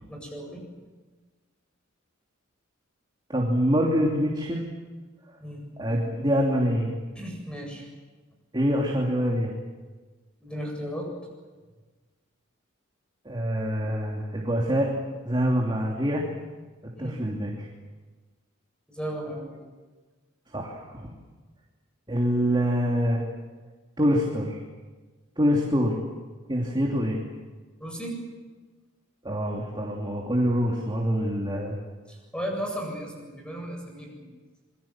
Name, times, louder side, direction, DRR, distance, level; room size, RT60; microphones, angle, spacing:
voice 1, 0.1-0.6 5.4-5.6 7.1-7.9 10.4-11.1 17.0-17.2 18.9-19.6 27.8-28.2 32.1-34.3, equal, 5° left, 1 dB, 8.0 m, -35 dB
voice 2, 3.3-4.7 5.8-7.0 8.5-9.5 13.2-14.9 15.2-16.3 17.0-17.7 20.5-21.1 22.1-23.2 24.0-24.6 25.4-26.0 26.5-27.2 29.2-31.8, equal, 20° right, -1 dB, 3.0 m, -25 dB
27.0 x 22.5 x 7.5 m, 1.3 s
head